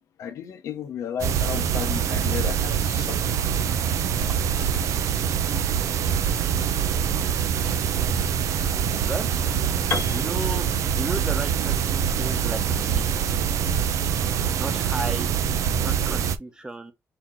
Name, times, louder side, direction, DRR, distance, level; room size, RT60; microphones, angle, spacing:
voice 1, 0.0-3.6 10.7-11.0 11.6-11.7, left 8 dB, 85° left, 0.9 m, -34 dB
sound 1, 1.2-16.4, right 8 dB, 80° right, 0.6 m, -24 dB
Piano, 9.9-13.8, left 4 dB, 50° left, 1.1 m, -35 dB
voice 2, 10.1-10.7 10.9-13.3 14.6-15.3 15.8-16.9, right 2 dB, 15° right, 1.0 m, -34 dB
4.3 x 2.9 x 3.7 m
cardioid pair, 110°, 5 cm